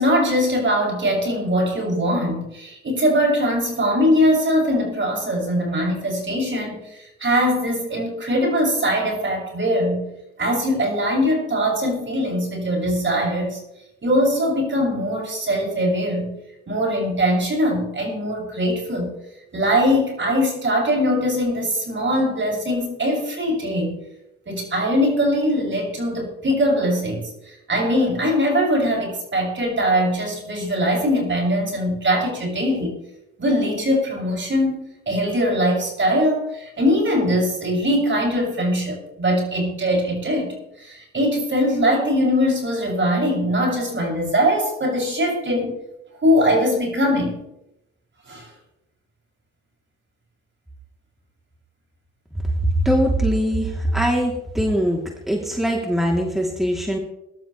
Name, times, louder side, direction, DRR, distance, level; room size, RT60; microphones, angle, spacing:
voice 1, 0.0-10.1 10.4-13.6 14.0-16.4 16.7-19.1 19.5-24.0 24.5-33.0 33.4-34.8 35.1-45.7 46.2-47.4 48.3-48.5, equal, 40° right, -1 dB, 7.1 m, -21 dB
voice 2, 52.8-55.0 55.3-57.0, equal, ahead, -1 dB, 3.2 m, -21 dB
22.0 x 12.0 x 3.3 m, 0.86 s
supercardioid pair, 60°, 30 cm